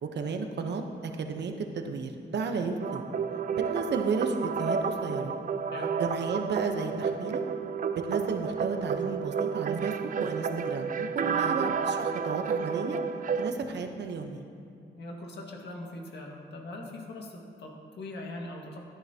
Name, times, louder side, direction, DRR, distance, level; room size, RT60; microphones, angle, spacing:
voice 1, 0.0-3.0 3.6-5.3 6.0-7.4 7.9-13.0 13.4-14.4, right 4 dB, 70° right, 5 dB, 0.9 m, -33 dB
sound 1, 2.8-13.5, right 6 dB, 45° right, 0.5 m, -31 dB
voice 2, 14.9-18.8, left 1 dB, 65° left, 0 dB, 1.8 m, -41 dB
12.5 x 10.5 x 2.9 m, 2.5 s
cardioid pair, 110°, 19 cm